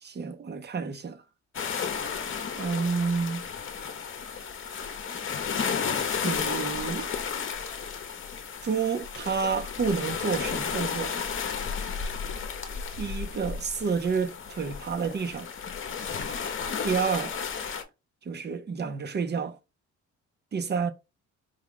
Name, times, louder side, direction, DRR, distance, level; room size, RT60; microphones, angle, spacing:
voice 1, 0.0-1.2 2.5-3.5 6.2-7.1 8.6-11.1 13.0-15.5 16.8-17.4 18.2-19.6 20.5-20.9, right 5 dB, 35° right, 0.8 m, -29 dB
sound 1, 1.5-17.8, left 6 dB, 40° left, 0.9 m, -33 dB
4.9 x 2.3 x 3.7 m
cardioid pair, 90°, 30 cm